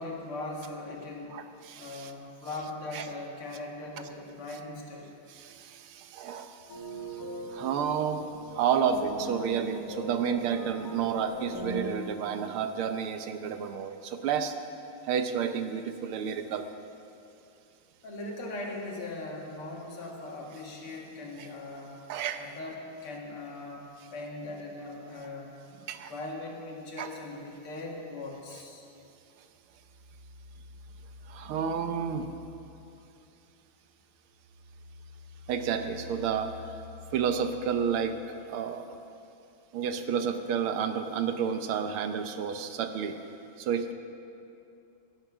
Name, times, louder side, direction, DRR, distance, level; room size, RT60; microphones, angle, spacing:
voice 1, 0.0-1.4 1.8-5.1 18.0-22.0 22.4-25.5 26.1-28.8, left 2 dB, 85° left, -1 dB, 2.8 m, -40 dB
voice 2, 1.3-2.1 2.9-3.0 5.3-6.8 7.1-7.2 7.5-14.5 15.0-16.7 21.4-21.5 22.1-22.4 25.9-26.1 27.0-27.1 31.3-32.3 35.5-36.6 37.1-38.2 38.5-39.0 39.7-43.2 43.6-43.9, right 7 dB, 85° right, 8 dB, 1.7 m, -31 dB
sound 1, 6.7-12.0, right 1 dB, 45° left, 2.6 m, -39 dB
sound 2, 29.7-33.6 33.9-38.5, left 4 dB, 5° right, 2.9 m, -49 dB
16.5 x 10.5 x 6.0 m, 2.7 s
omnidirectional pair, 2.3 m